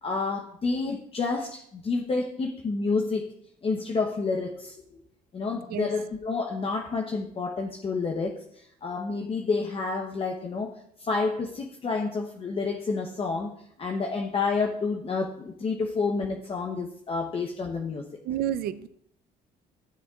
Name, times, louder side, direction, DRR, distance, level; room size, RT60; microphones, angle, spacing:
voice 1, 0.0-3.3 3.6-5.0 5.3-10.7 11.0-13.5 13.8-18.0, left 4 dB, 35° left, 1 dB, 0.9 m, -29 dB
voice 2, 18.2-18.9, right 10 dB, 65° right, 12 dB, 0.5 m, -29 dB
15.0 x 7.1 x 2.4 m, 0.70 s
cardioid pair, 110°, 17 cm